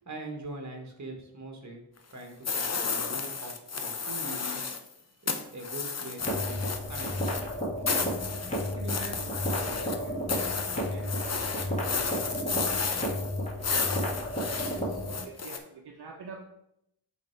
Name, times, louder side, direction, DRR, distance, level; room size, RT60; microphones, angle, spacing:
voice 1, 0.0-1.8 2.1-4.6 5.2-7.1 7.5-7.6, right 1 dB, 40° right, 3 dB, 1.5 m, -42 dB
sound 1, 2.4-4.9 5.3-15.6, left 5 dB, 40° left, 0.7 m, -33 dB
sound 2, 6.2-15.2, equal, 15° left, 2.1 m, -33 dB
voice 2, 8.7-10.2 10.9-13.2 13.5-16.4, right 4 dB, 65° right, 1 dB, 0.8 m, -46 dB
8.4 x 3.5 x 4.5 m, 0.79 s
wide cardioid pair, 110°, 43 cm